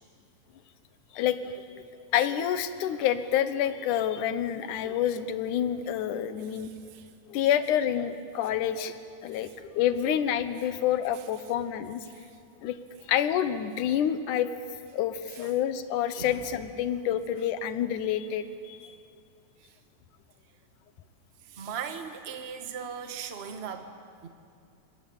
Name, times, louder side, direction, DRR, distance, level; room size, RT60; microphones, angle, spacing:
voice 1, 1.1-1.6 2.1-6.7 7.3-9.0 9.2-12.0 12.6-12.8 13.1-14.5 14.9-18.9, left 10 dB, 75° left, 11 dB, 2.5 m, -28 dB
voice 2, 6.4-7.1 9.4-9.5 10.6-10.7 12.1-12.3 15.3-15.5 16.2-16.4 19.6-19.7 21.4-23.9 24.2-24.3, right 7 dB, 55° right, 7 dB, 0.6 m, -39 dB
27.0 x 20.0 x 8.7 m, 2.4 s
omnidirectional pair, 3.7 m